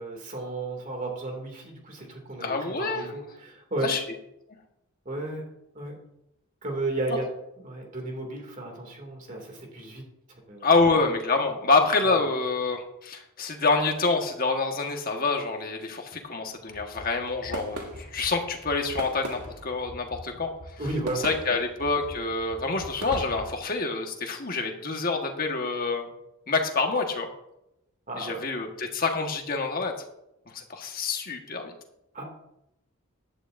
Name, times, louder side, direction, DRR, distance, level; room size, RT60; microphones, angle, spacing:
voice 1, 0.0-2.5 2.8-3.9 5.0-5.4 5.7-6.0 6.6-7.3 7.6-10.0 10.3-10.7 12.0-12.2 20.8-21.6 28.1-28.4 32.1-32.2, right 2 dB, 35° right, 1 dB, 2.5 m, -34 dB
voice 2, 2.4-3.0 3.8-4.0 10.6-20.5 21.2-26.1 26.5-27.3 28.2-29.9 30.5-31.7, left 3 dB, 40° left, 3 dB, 1.5 m, -27 dB
sound 1, 16.6-23.6, right 1 dB, 85° right, 2.0 m, -41 dB
14.5 x 11.0 x 2.6 m, 0.86 s
head